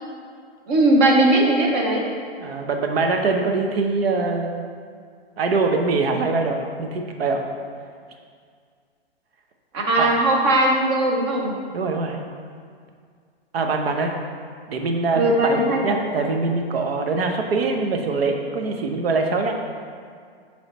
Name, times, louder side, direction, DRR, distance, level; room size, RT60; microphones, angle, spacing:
voice 1, 0.7-2.0 9.7-11.5 15.1-16.0, right 1 dB, 25° right, 0 dB, 0.7 m, -19 dB
voice 2, 2.4-4.5 5.4-7.4 10.0-10.1 11.7-12.2 13.5-14.1 14.7-19.6, right 3 dB, 70° right, 3 dB, 0.9 m, -23 dB
6.9 x 3.2 x 4.2 m, 2.1 s
hypercardioid pair, 160°, 31 cm